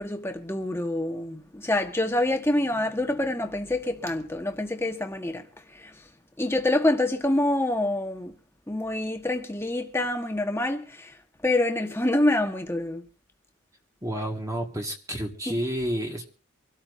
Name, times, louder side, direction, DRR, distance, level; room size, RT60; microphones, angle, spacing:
voice 1, 0.0-6.0 6.4-8.3 8.7-11.2 11.4-13.0 15.5-15.6, left 1 dB, 10° left, 1.3 m, -26 dB
voice 2, 14.0-16.2, equal, 15° right, 1.6 m, -30 dB
25.0 x 13.0 x 2.6 m
head